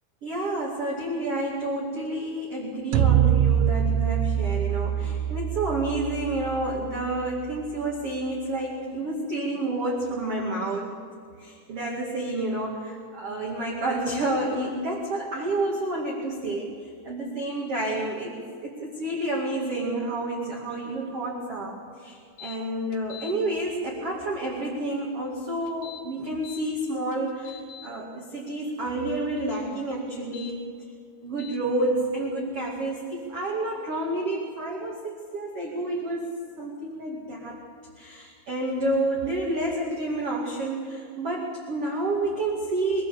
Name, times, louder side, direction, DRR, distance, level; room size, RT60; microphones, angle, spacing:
voice 1, 0.2-10.9 11.4-16.7 17.0-30.6 31.2-37.6 38.0-43.1, right 2 dB, 40° right, -2 dB, 2.2 m, -29 dB
sound 1, 2.9-7.3, right 9 dB, 85° right, 2.7 m, -24 dB
sound 2, 22.4-22.6 22.9-23.3 25.7-26.6 27.1-27.9 30.2-30.5 31.4-31.6, left 9 dB, 70° left, 4.1 m, -43 dB
23.5 x 17.0 x 7.0 m, 2.3 s
omnidirectional pair, 6.0 m